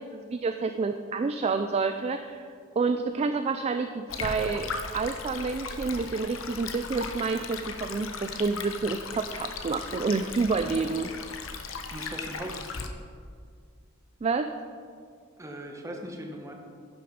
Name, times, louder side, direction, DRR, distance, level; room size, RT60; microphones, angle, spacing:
voice 1, 0.0-2.5 2.8-11.1 14.2-14.5, right 4 dB, 30° right, 7 dB, 0.3 m, -29 dB
Stream, 4.1-12.9, left 4 dB, 80° left, 0.8 m, -37 dB
voice 2, 11.9-12.7 15.4-16.5, right 1 dB, 15° right, 2 dB, 1.1 m, -39 dB
10.5 x 6.2 x 5.1 m, 2.1 s
head